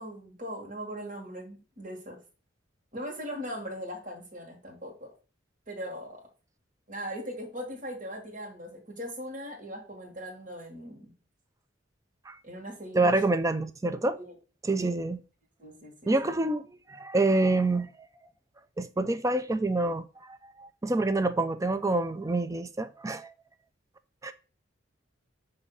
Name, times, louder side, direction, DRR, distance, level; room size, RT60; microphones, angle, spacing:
voice 1, 0.0-2.2 2.9-5.1 5.7-6.2 6.9-11.1 12.4-13.2 14.2-14.3 14.8-15.0 15.6-16.4, equal, 40° right, 1.6 m, -40 dB
voice 2, 12.9-14.2 14.6-15.2 16.1-16.6 16.9-17.9 18.8-23.3 24.2-24.3, right 2 dB, 15° right, 0.4 m, -27 dB
6.7 x 2.7 x 5.4 m
head